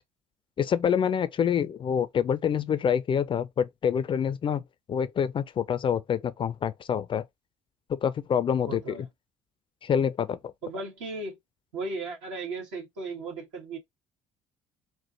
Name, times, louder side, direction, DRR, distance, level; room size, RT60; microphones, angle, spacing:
voice 1, 0.6-4.6 4.9-7.2 7.9-8.8 9.8-10.5, left 8 dB, 35° left, 0.5 m, -26 dB
voice 2, 8.7-9.1 10.6-11.4 11.7-13.8, right 3 dB, 70° right, 2.1 m, -36 dB
4.7 x 2.1 x 4.3 m
figure-of-eight pair, 55°, 16 cm